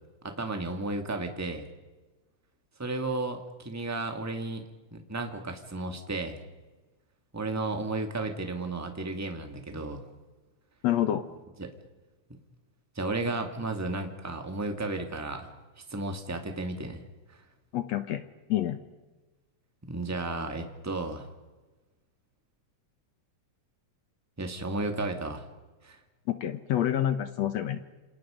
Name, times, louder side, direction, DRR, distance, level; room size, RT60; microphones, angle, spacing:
voice 1, 0.2-1.7 2.8-4.6 4.9-6.4 7.3-10.0 11.6-11.7 12.9-15.5 15.9-17.0 19.8-21.3 24.4-25.4 25.8-26.0, right 2 dB, 5° right, 5 dB, 1.6 m, -33 dB
voice 2, 10.8-11.2 17.7-18.2 18.5-18.8 26.4-27.8, left 11 dB, 65° left, 10 dB, 2.0 m, -27 dB
28.0 x 27.5 x 5.1 m, 1.2 s
omnidirectional pair, 3.5 m